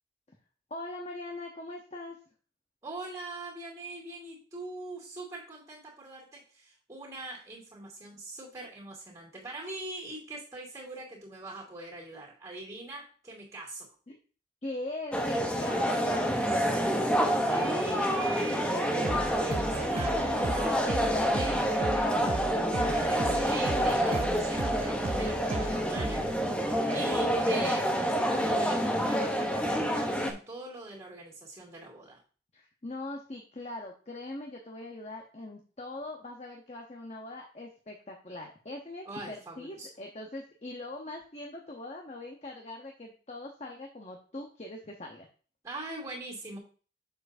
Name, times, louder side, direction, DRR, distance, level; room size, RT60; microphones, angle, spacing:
voice 1, 0.7-2.2 14.1-14.2 14.6-18.6 32.5-45.3, left 2 dB, 35° left, 1 dB, 0.9 m, -42 dB
voice 2, 2.8-13.9 17.5-26.3 26.9-32.2 39.1-39.9 45.6-46.6, right 2 dB, 20° right, -1 dB, 2.6 m, -42 dB
sound 1, 15.1-30.3, equal, 5° left, 0.8 m, -28 dB
sound 2, 19.0-27.4, right 3 dB, 35° right, 0.4 m, -37 dB
7.2 x 6.5 x 2.6 m, 0.38 s
head